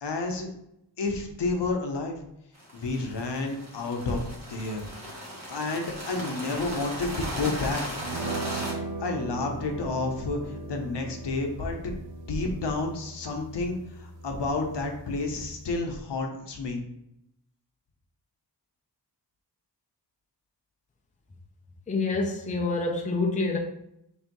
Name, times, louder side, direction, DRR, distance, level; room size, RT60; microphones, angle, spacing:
voice 1, 0.0-0.5 1.0-2.2 2.7-4.2 4.5-4.9 5.5-7.8 8.4-8.6 9.0-12.0 12.3-16.8, left 3 dB, 70° left, 2 dB, 0.8 m, -30 dB
sound 1, 2.5-8.7, equal, 40° right, 1.1 m, -37 dB
sound 2, 8.0-15.8, right 3 dB, 80° right, 0.7 m, -39 dB
voice 2, 21.9-23.6, left 3 dB, 20° left, 1 dB, 0.5 m, -27 dB
3.4 x 2.6 x 4.5 m, 0.80 s
wide cardioid pair, 110°, 43 cm